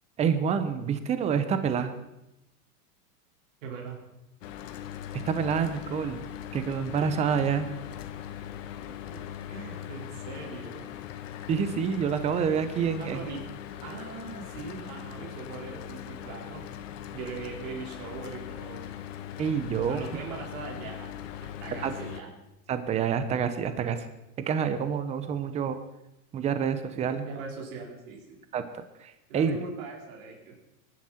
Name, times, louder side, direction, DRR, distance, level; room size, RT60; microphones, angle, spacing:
voice 1, 0.2-1.9 5.3-6.2 6.5-7.7 11.5-13.3 19.4-20.0 21.8-21.9 22.7-24.1 24.4-25.8 26.3-27.3 28.5-29.6, right 7 dB, 15° right, 10 dB, 0.8 m, -27 dB
voice 2, 3.6-4.0 9.1-10.9 13.0-13.5 13.8-16.7 17.1-18.8 19.9-21.1 21.4-22.3 27.1-28.4 29.3-30.6, right 4 dB, 60° right, -1 dB, 4.8 m, -41 dB
Mechanical fan, 4.4-22.2, left 10 dB, 55° left, 1.4 m, -40 dB
22.0 x 11.5 x 4.4 m, 0.90 s
supercardioid pair, 150°, 45 cm